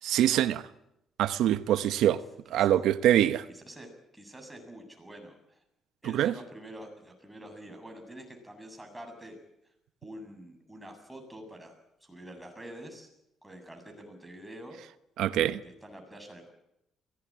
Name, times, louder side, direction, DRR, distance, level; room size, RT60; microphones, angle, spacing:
voice 1, 0.0-0.6 1.2-2.2 2.5-3.4 6.1-6.3 15.2-15.6, right 11 dB, 80° right, 1.0 m, -24 dB
voice 2, 3.5-5.6 6.0-9.4 10.0-11.8 12.0-13.1 13.4-14.8 15.6-16.5, right 1 dB, 5° right, 7.5 m, -46 dB
23.0 x 18.5 x 8.8 m
cardioid pair, 85°, 0 cm